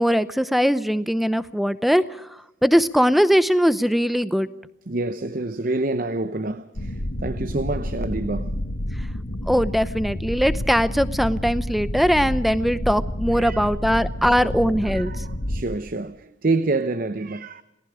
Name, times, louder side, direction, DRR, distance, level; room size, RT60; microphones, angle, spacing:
voice 1, 0.0-4.5 9.5-15.2, equal, ahead, 0.7 m, -21 dB
voice 2, 4.9-8.5 13.3-13.6 14.2-14.5 14.8-17.6, right 2 dB, 45° right, 0.8 m, -27 dB
sound 1, 6.8-15.6, left 1 dB, 65° left, 2.1 m, -29 dB
28.5 x 18.5 x 5.0 m
head